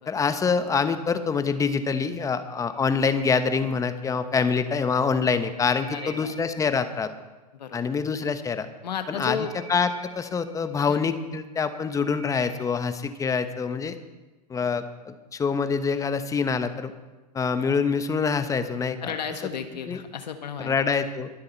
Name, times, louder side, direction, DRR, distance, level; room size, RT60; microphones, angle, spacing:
voice 1, 0.1-7.1 7.7-8.7 9.1-9.9 10.1-13.9 14.5-16.9 17.3-19.1 19.9-20.0 20.6-21.3, left 5 dB, 15° left, 10 dB, 0.9 m, -25 dB
sound 1, 2.7-4.1 5.1-6.9 8.9-11.0 11.5-13.0, right 2 dB, 65° right, 3.3 m, -48 dB
voice 2, 5.9-6.3 7.5-7.8 8.8-9.5 10.9-11.0 19.0-20.8, left 7 dB, 85° left, 8 dB, 1.4 m, -33 dB
22.5 x 7.7 x 4.5 m, 1.2 s
hypercardioid pair, 115°, 21 cm